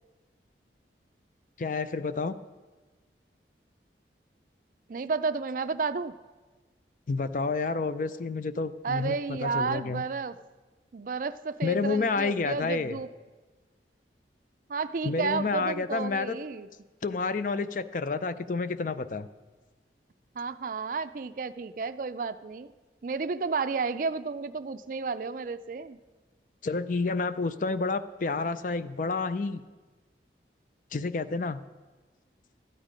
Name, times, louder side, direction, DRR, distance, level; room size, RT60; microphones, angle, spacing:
voice 1, 1.6-2.4 7.1-10.0 11.6-13.0 15.0-16.4 17.0-19.3 26.6-29.6 30.9-31.6, left 4 dB, 45° left, 13 dB, 0.4 m, -29 dB
voice 2, 4.9-6.1 8.8-10.4 10.9-13.1 14.7-16.7 20.4-22.7 23.0-26.0, right 4 dB, 50° right, 12 dB, 0.4 m, -32 dB
13.0 x 9.0 x 5.1 m, 1.3 s
head